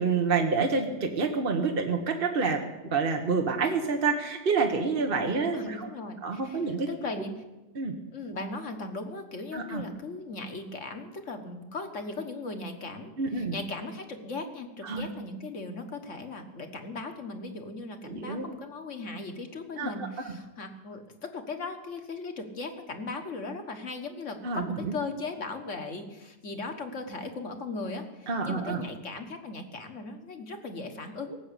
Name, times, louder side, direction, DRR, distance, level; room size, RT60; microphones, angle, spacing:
voice 1, 0.0-5.9 6.2-6.9 7.8-8.0 9.5-9.8 13.2-13.6 14.8-15.1 18.0-18.4 19.8-19.9 20.2-20.3 24.4-25.0 28.3-28.8, right 4 dB, 40° right, 3 dB, 1.2 m, -28 dB
voice 2, 5.1-7.4 8.1-31.4, left 3 dB, 50° left, 6 dB, 1.6 m, -38 dB
18.0 x 7.6 x 8.3 m, 1.0 s
omnidirectional pair, 1.8 m